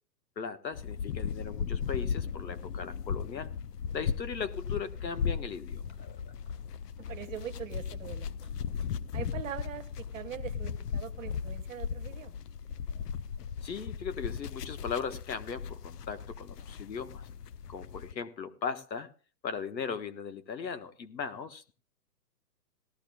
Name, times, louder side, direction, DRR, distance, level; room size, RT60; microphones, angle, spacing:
voice 1, 0.4-3.5 3.9-6.3 13.6-17.2 17.7-19.1 19.4-21.7, left 6 dB, 90° left, 11 dB, 1.4 m, -38 dB
sound 1, 0.7-18.1, left 7 dB, 70° left, 0.7 m, -37 dB
sound 2, 4.8-7.7 8.0-9.3, left 3 dB, 45° left, 5.5 m, -60 dB
voice 2, 7.1-8.5 9.1-12.4, right 10 dB, 50° right, 11 dB, 1.2 m, -42 dB
18.0 x 13.5 x 2.3 m, 0.37 s
hypercardioid pair, 150°, 50 cm